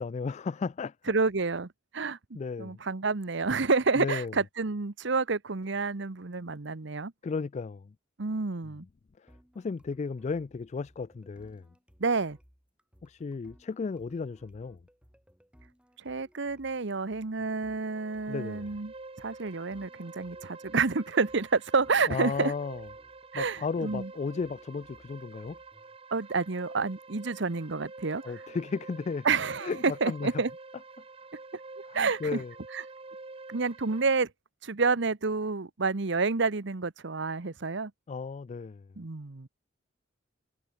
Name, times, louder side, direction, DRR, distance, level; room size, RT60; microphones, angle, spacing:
voice 1, 0.0-0.9 2.3-2.8 4.0-4.3 7.2-7.9 9.2-11.7 13.0-14.8 18.3-18.8 22.1-22.9 23.3-25.6 28.2-29.3 29.6-30.4 31.9-32.5 38.1-38.9, left 4 dB, 35° left, 0.3 m, -34 dB
voice 2, 1.1-7.1 8.2-8.8 12.0-12.4 16.0-22.5 23.3-24.1 26.1-28.2 29.2-30.5 31.9-32.4 32.7-32.8 33.5-34.3 34.6-37.9 39.0-39.5, right 4 dB, 65° right, 1.0 m, -29 dB
sound 1, 9.3-26.0, equal, 5° right, 4.6 m, -62 dB
sound 2, 17.8-34.1, right 3 dB, 30° right, 1.2 m, -48 dB
head